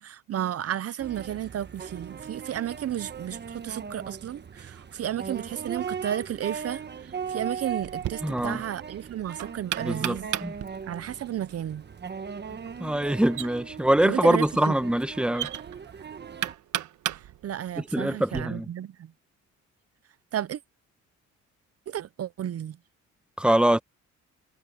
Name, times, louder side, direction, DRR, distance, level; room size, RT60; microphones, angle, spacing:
voice 1, 0.0-10.3 10.8-11.8 14.0-14.7 17.4-19.1 20.3-20.6 21.9-22.8, right 10 dB, 50° right, 0.7 m, -33 dB
sound 1, 1.0-16.5, right 6 dB, 35° right, 1.2 m, -39 dB
Knock, 7.8-18.4, right 12 dB, 75° right, 1.3 m, -37 dB
voice 2, 8.2-8.6 9.8-10.5 12.8-15.5 17.8-18.7 23.4-23.8, right 1 dB, 5° right, 1.4 m, -24 dB
cardioid pair, 90°, 30 cm